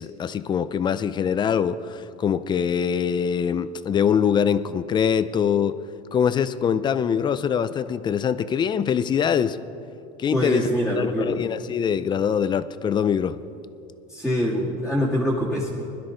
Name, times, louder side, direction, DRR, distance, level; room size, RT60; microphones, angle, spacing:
voice 1, 0.0-5.8 6.1-9.6 10.2-10.7 11.0-13.4, left 7 dB, 25° left, 14 dB, 0.4 m, -23 dB
voice 2, 10.3-11.4 14.1-15.8, equal, 5° right, -8 dB, 2.0 m, -24 dB
20.5 x 12.0 x 3.9 m, 2.6 s
supercardioid pair, 135°, 19 cm